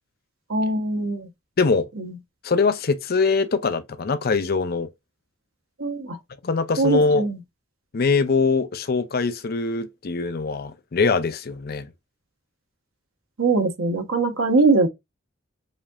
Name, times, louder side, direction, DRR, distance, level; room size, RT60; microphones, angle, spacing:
voice 1, 0.5-1.3 2.0-2.2 5.8-6.2 6.8-7.4 13.4-14.9, right 3 dB, 90° right, 1.0 m, -22 dB
voice 2, 1.6-1.9 2.4-4.9 6.4-7.2 7.9-11.9, left 4 dB, 50° left, 0.5 m, -22 dB
5.0 x 2.7 x 2.3 m
head